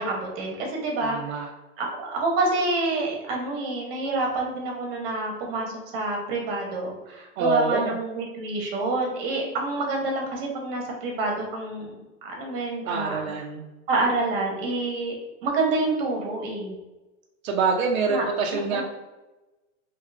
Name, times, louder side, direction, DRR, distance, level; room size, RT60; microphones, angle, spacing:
voice 1, 0.0-1.4 1.8-11.9 12.2-13.3 13.9-15.1 15.4-16.8 18.1-18.3 18.5-18.8, right 2 dB, 45° right, 0 dB, 1.0 m, -27 dB
voice 2, 1.0-1.5 7.4-8.0 12.8-13.6 17.4-18.8, right 4 dB, 85° right, 1 dB, 0.6 m, -26 dB
2.8 x 2.3 x 3.3 m, 1.1 s
supercardioid pair, 145°, 39 cm